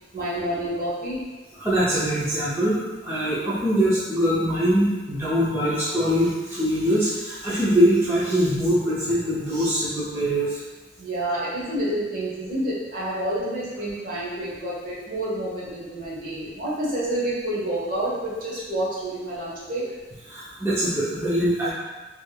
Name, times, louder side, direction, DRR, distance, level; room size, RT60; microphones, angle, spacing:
voice 1, 0.1-1.2 11.0-19.9, right 1 dB, 50° right, -7 dB, 1.1 m, -28 dB
voice 2, 1.6-10.6 20.3-21.7, equal, 15° right, -10 dB, 0.5 m, -23 dB
3.2 x 3.2 x 2.2 m, 1.2 s
head